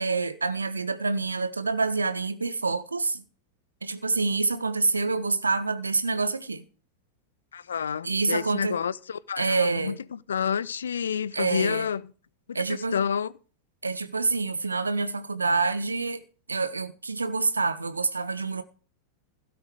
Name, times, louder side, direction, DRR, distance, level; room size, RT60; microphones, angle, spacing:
voice 1, 0.0-3.2 3.8-6.6 8.0-8.8 9.4-10.0 11.3-11.9 12.5-13.0 13.8-16.2 16.5-18.6, right 3 dB, 80° right, 1.1 m, -27 dB
voice 2, 7.5-12.0 12.5-13.3, left 7 dB, 70° left, 0.6 m, -29 dB
16.5 x 7.9 x 4.8 m
figure-of-eight pair, 90°, 0 cm